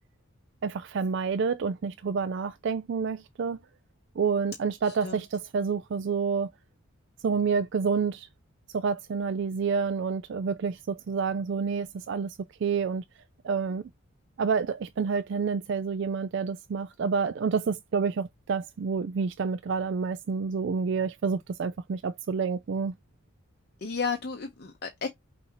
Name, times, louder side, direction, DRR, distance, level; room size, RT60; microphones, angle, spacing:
voice 1, 0.6-3.6 4.2-6.5 7.2-8.3 8.7-13.0 13.4-13.8 14.4-22.9, right 5 dB, 55° right, 0.3 m, -28 dB
voice 2, 4.8-5.2 23.8-25.1, left 5 dB, 45° left, 0.8 m, -33 dB
6.1 x 2.7 x 2.9 m
head